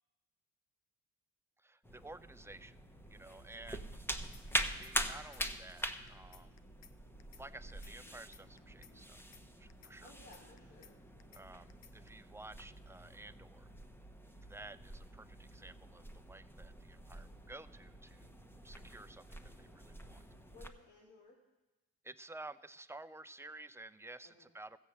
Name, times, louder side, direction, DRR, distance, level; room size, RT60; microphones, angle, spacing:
voice 1, 1.6-2.8 3.1-4.1 4.5-6.6 7.4-9.3 9.6-10.1 11.3-13.7 14.4-18.4 18.6-20.2 22.0-24.8, right 2 dB, 10° right, 11 dB, 0.6 m, -53 dB
sound 1, 1.8-20.7, equal, 5° left, 1.0 m, -44 dB
sound 2, 4.3-4.9 5.2-5.4 5.7-6.9 7.2-7.4 7.7-8.9 9.2-9.4 9.7-10.9 11.2-11.4 11.7-12.1, left 8 dB, 55° left, 0.7 m, -59 dB
voice 2, 10.0-10.9 20.5-21.4 24.2-24.5, left 2 dB, 80° left, -2 dB, 2.9 m, -58 dB
15.0 x 7.8 x 7.1 m, 1.0 s
cardioid pair, 90°, 30 cm